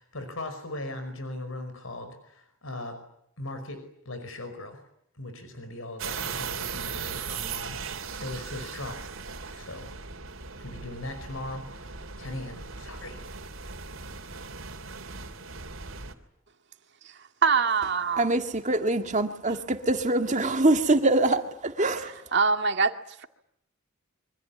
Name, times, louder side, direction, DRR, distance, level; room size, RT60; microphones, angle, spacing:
voice 1, 0.0-3.0 3.4-4.8 5.1-7.8 8.1-9.2 9.5-9.9 10.6-13.2, left 1 dB, 85° left, 8 dB, 5.2 m, -39 dB
sound 1, 6.0-16.1, right 5 dB, 85° right, 3.1 m, -38 dB
voice 2, 17.4-18.3 22.3-22.9, right 5 dB, 55° right, 6 dB, 2.2 m, -23 dB
voice 3, 18.2-22.2, right 2 dB, 35° right, 6 dB, 2.0 m, -24 dB
28.0 x 25.0 x 8.6 m, 0.76 s
head